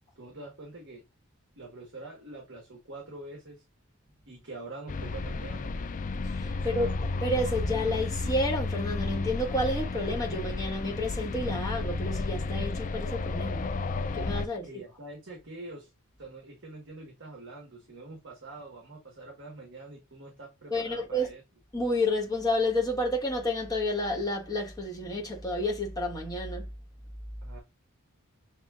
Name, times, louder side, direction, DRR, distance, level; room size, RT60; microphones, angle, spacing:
voice 1, 0.2-1.0 1.6-3.6 4.3-5.7 6.5-6.9 14.5-15.9 16.2-21.4 27.4-27.6, right 2 dB, 60° right, 1.4 m, -45 dB
sound 1, 4.9-14.5, left 3 dB, 35° left, 0.3 m, -32 dB
voice 2, 6.2-13.7 14.1-14.7 20.7-21.3 21.7-26.6, left 1 dB, 20° left, 1.6 m, -30 dB
7.4 x 2.7 x 2.4 m
head